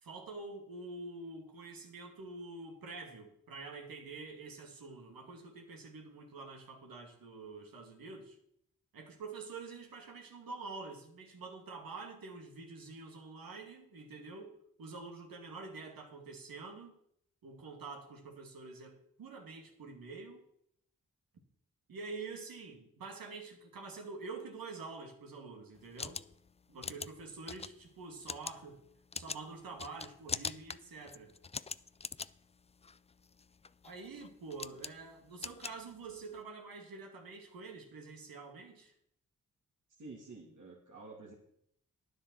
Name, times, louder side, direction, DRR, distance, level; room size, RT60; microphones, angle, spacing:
voice 1, 0.0-8.4 8.9-17.0 17.4-20.4 21.9-26.2 26.7-28.8 29.1-31.3 33.8-38.9, right 3 dB, 75° right, 2 dB, 2.3 m, -47 dB
sound 1, 25.8-36.4, left 5 dB, 20° left, 0.4 m, -44 dB
voice 2, 40.0-41.3, right 3 dB, 60° right, -3 dB, 2.5 m, -50 dB
9.8 x 7.9 x 6.3 m, 0.70 s
supercardioid pair, 45°, 35 cm